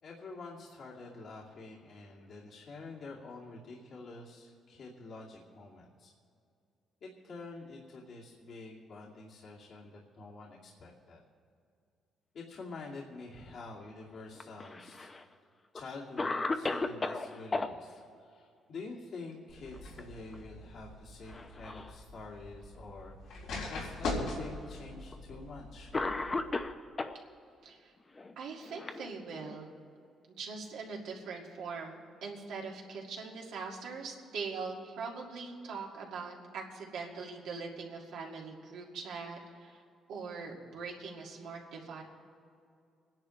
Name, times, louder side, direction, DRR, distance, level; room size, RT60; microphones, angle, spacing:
voice 1, 0.0-6.1 7.0-11.2 12.3-15.1 15.7-25.9, left 3 dB, 65° left, -4 dB, 2.4 m, -47 dB
Cough, 14.4-15.2 15.8-15.9 16.2-17.7 19.6-20.0 20.3-20.5 21.3-22.0 22.8-22.9 23.9-24.0 25.1-25.3 25.9-27.2 28.2-29.6, left 3 dB, 30° left, 0.8 m, -35 dB
sound 1, 19.5-26.6, left 2 dB, 85° left, 3.6 m, -42 dB
voice 2, 27.6-27.9 28.4-29.7 30.4-39.8 40.1-42.0, right 4 dB, 85° right, -2 dB, 2.2 m, -42 dB
27.0 x 10.5 x 3.2 m, 2.4 s
cardioid pair, 90°, 0 cm